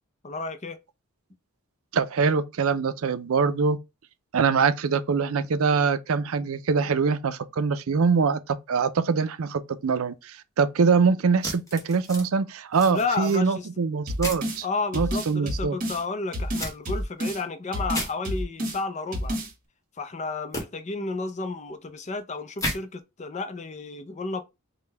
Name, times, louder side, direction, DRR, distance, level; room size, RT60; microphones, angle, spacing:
voice 1, 0.2-0.8 12.9-13.7 14.6-19.4 20.0-24.4, left 3 dB, 30° left, 0.5 m, -32 dB
voice 2, 1.9-3.8 4.3-14.6 14.9-15.8, right 5 dB, 75° right, 0.5 m, -24 dB
sound 1, 11.4-12.3 12.7-13.4 14.2-14.5 16.6-16.7 17.9-18.1 20.5-20.6 22.6-22.8, left 1 dB, 15° left, 1.0 m, -32 dB
sound 2, 14.1-14.6 14.9-16.0 16.3-17.4 17.7-18.8 19.1-19.5, equal, 40° right, 1.2 m, -29 dB
5.2 x 2.2 x 3.3 m
head